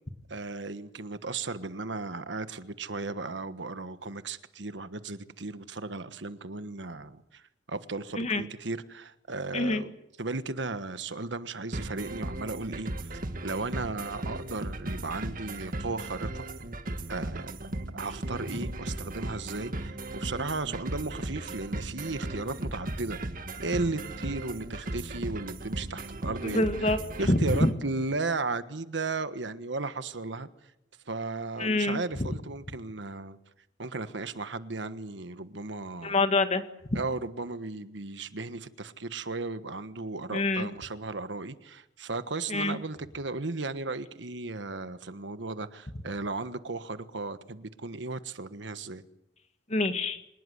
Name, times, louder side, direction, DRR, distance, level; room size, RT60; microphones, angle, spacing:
voice 1, 0.3-7.4 7.7-9.9 10.2-16.5 17.1-23.2 23.6-26.7 27.2-30.5 31.1-33.4 33.8-36.2 36.9-49.0, right 3 dB, 75° right, 1.4 m, -35 dB
voice 2, 9.5-9.8 26.4-27.0 27.3-27.7 31.6-32.0 36.0-36.6 36.9-37.0 40.3-40.7 42.5-42.8 49.7-50.2, left 2 dB, 40° left, 1.9 m, -26 dB
sound 1, 11.7-27.7, right 1 dB, 50° right, 1.8 m, -37 dB
25.5 x 19.5 x 8.0 m
head